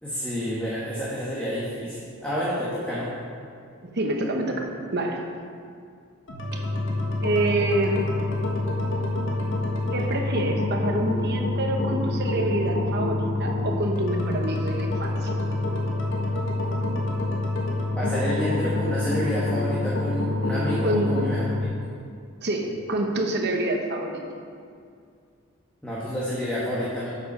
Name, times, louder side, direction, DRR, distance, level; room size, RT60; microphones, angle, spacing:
voice 1, 0.0-3.1 17.9-21.4 25.8-27.1, equal, 5° left, -8 dB, 1.2 m, -29 dB
voice 2, 3.9-4.6 4.9-5.2 6.5-6.6 7.2-8.1 9.9-15.3 20.8-21.1 22.4-24.2, right 1 dB, 50° right, 2 dB, 1.0 m, -27 dB
sound 1, 6.3-21.6, left 2 dB, 55° left, 1.4 m, -27 dB
7.9 x 7.0 x 5.4 m, 2.3 s
head